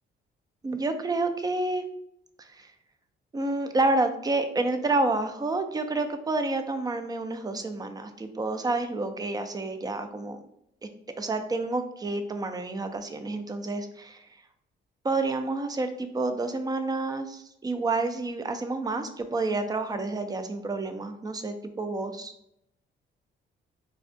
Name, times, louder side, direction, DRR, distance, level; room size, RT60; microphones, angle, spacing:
voice 1, 0.6-1.8 2.4-2.7 3.3-10.4 11.2-14.3 15.0-22.3, right 2 dB, 20° right, 8 dB, 0.4 m, -29 dB
4.3 x 2.3 x 2.5 m, 0.75 s
cardioid pair, 90°, 20 cm